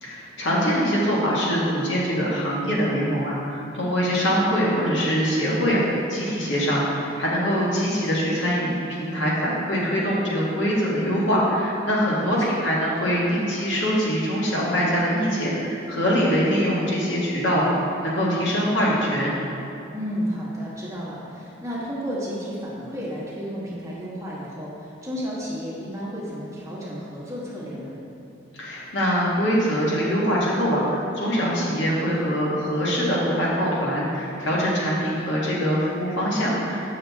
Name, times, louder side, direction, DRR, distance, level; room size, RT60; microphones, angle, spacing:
voice 1, 0.0-17.7 18.0-19.3 28.6-36.9, equal, 65° left, -5 dB, 1.6 m, -23 dB
voice 2, 12.1-12.6 19.9-28.0, equal, 15° right, -7 dB, 1.4 m, -32 dB
7.6 x 6.5 x 3.5 m, 2.9 s
head